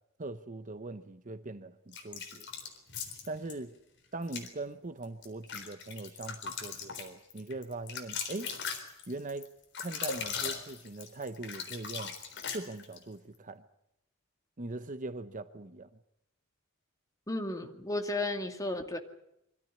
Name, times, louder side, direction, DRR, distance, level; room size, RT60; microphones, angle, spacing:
voice 1, 0.2-2.5 3.3-3.7 4.1-8.5 9.1-9.5 9.8-12.1 12.5-13.6 14.6-15.9, right 2 dB, 40° right, 0.9 m, -41 dB
sound 1, 1.9-3.6 4.2-4.5 5.0-13.0, left 6 dB, 55° left, 4.0 m, -39 dB
voice 2, 17.3-19.0, left 2 dB, 15° left, 2.3 m, -33 dB
24.5 x 14.0 x 9.8 m
head